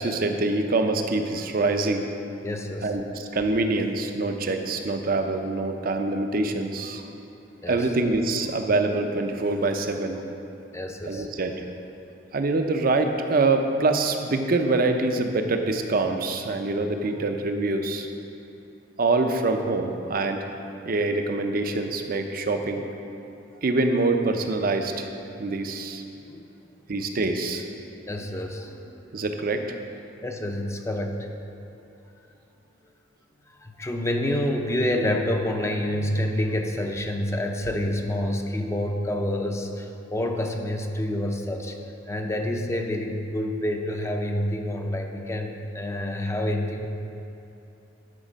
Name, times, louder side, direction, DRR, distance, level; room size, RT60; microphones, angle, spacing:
voice 1, 0.0-2.1 2.8-7.0 7.7-10.2 11.1-11.6 12.3-18.1 19.0-20.5 20.8-22.9 23.6-25.1 25.4-26.0 26.9-27.7 29.1-29.8 42.1-42.2, right 2 dB, 50° right, 5 dB, 0.6 m, -25 dB
voice 2, 2.4-2.9 7.6-7.8 10.7-11.3 26.3-26.4 28.1-29.1 30.2-31.3 33.6-41.8 42.1-46.9, left 1 dB, 15° left, 3 dB, 0.5 m, -28 dB
11.5 x 4.4 x 5.1 m, 2.9 s
head